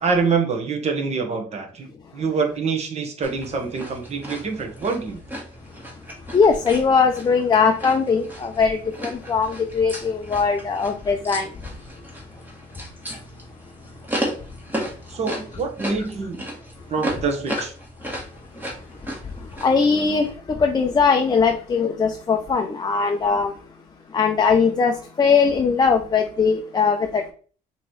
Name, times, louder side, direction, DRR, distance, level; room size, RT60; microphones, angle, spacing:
voice 1, 0.0-1.9 2.1-5.2 15.1-16.5 16.9-17.7, right 5 dB, 40° right, 1.1 m, -25 dB
sound 1, 3.2-20.3, equal, 10° right, 1.3 m, -35 dB
voice 2, 6.3-11.5 19.6-23.5 24.1-27.2, left 5 dB, 25° left, 0.5 m, -20 dB
5.8 x 3.0 x 3.1 m
cardioid pair, 110°, 17 cm